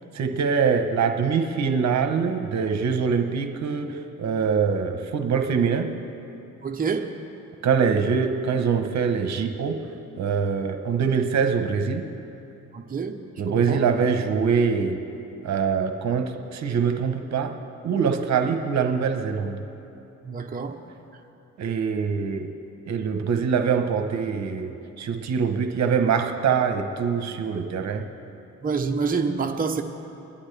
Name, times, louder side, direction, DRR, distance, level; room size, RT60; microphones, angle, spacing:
voice 1, 0.1-5.9 7.6-9.8 10.2-12.0 13.4-15.0 15.4-17.5 17.8-19.6 21.6-22.5 22.9-28.0, right 6 dB, 65° right, 6 dB, 1.0 m, -24 dB
voice 2, 6.6-7.1 12.7-13.2 13.5-13.8 20.2-20.7 28.6-29.8, right 5 dB, 30° right, 3 dB, 0.9 m, -27 dB
24.0 x 11.5 x 3.3 m, 2.9 s
cardioid pair, 90°, 30 cm